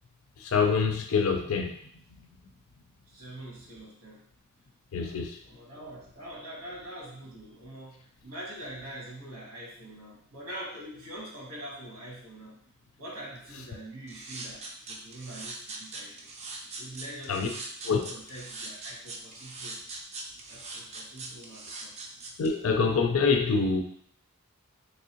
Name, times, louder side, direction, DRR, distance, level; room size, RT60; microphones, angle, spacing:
voice 1, 0.4-1.8 4.9-5.4 17.3-17.5 17.9-18.0 22.4-23.8, left 5 dB, 65° left, 5 dB, 0.4 m, -25 dB
voice 2, 3.1-4.2 4.9-5.1 5.4-12.5 13.0-14.6 14.9-16.3 16.8-19.8 20.5-21.9, right 1 dB, 85° right, -4 dB, 1.4 m, -44 dB
sound 1, 14.1-22.5, right 3 dB, 30° right, 0.4 m, -41 dB
3.5 x 3.0 x 2.9 m, 0.63 s
head